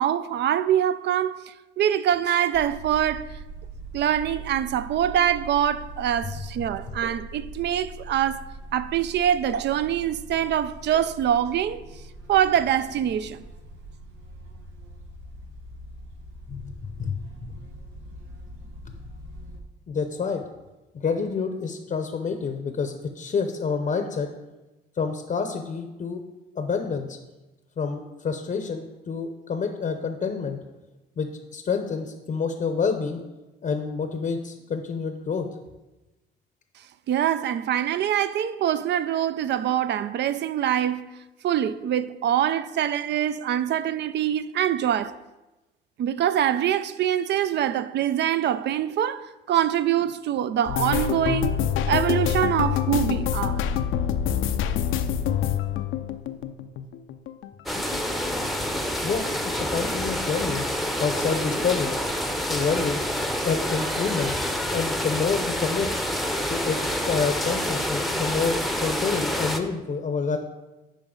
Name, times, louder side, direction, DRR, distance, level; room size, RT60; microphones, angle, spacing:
voice 1, 0.0-3.3 3.9-8.4 8.7-11.8 12.3-13.4 37.1-41.2 41.4-45.2 46.0-51.6 51.9-53.7, right 10 dB, 60° right, 0.4 m, -24 dB
sound 1, 2.5-19.6, right 2 dB, 90° right, 1.2 m, -42 dB
voice 2, 16.5-17.5 18.9-19.0 19.9-20.4 20.9-24.3 25.0-26.2 26.6-27.2 27.8-30.6 31.2-33.2 33.6-35.5 59.0-60.6 61.0-62.0 62.5-63.0 63.4-64.3 64.7-65.9 66.5-66.8 67.0-70.4, left 5 dB, 40° left, 0.7 m, -28 dB
sound 2, 50.7-57.5 57.8-58.8 59.1-59.4 59.8-60.0, left 9 dB, 80° left, 0.5 m, -26 dB
sound 3, 57.7-69.6, equal, ahead, 0.7 m, -27 dB
8.8 x 5.1 x 3.8 m
cardioid pair, 90°, 20 cm